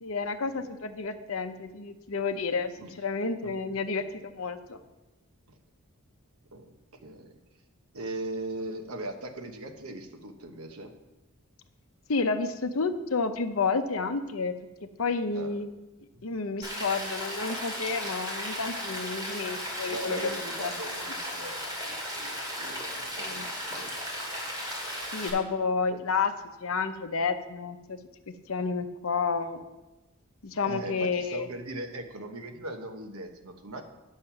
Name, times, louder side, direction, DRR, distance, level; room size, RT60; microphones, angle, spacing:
voice 1, 0.0-2.7 3.0-4.8 12.1-14.5 15.0-15.7 16.2-20.3 20.6-20.7 23.2-23.5 25.1-26.3 26.6-28.0 28.5-29.6 30.4-31.5, left 4 dB, 65° left, 9 dB, 0.7 m, -30 dB
voice 2, 7.0-7.4 7.9-11.0 15.3-15.5 19.9-23.9 25.9-26.0 30.6-33.8, right 2 dB, 75° right, 5 dB, 1.0 m, -39 dB
Rain, 16.6-25.3, equal, 20° right, 2.4 m, -35 dB
9.0 x 6.5 x 5.8 m, 1.1 s
head